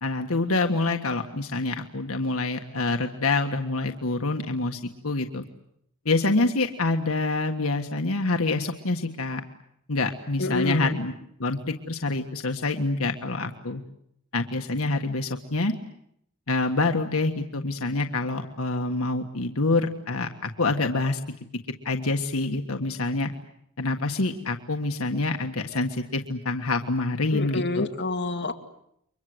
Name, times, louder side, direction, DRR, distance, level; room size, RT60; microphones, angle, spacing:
voice 1, 0.0-5.4 6.0-9.4 9.9-11.1 11.4-13.8 14.3-15.7 16.5-21.2 21.8-23.3 23.8-27.8, left 3 dB, 80° left, 4 dB, 1.6 m, -26 dB
voice 2, 10.4-11.0 27.3-28.5, left 2 dB, 55° left, 3 dB, 2.5 m, -28 dB
30.0 x 24.0 x 7.9 m, 0.75 s
head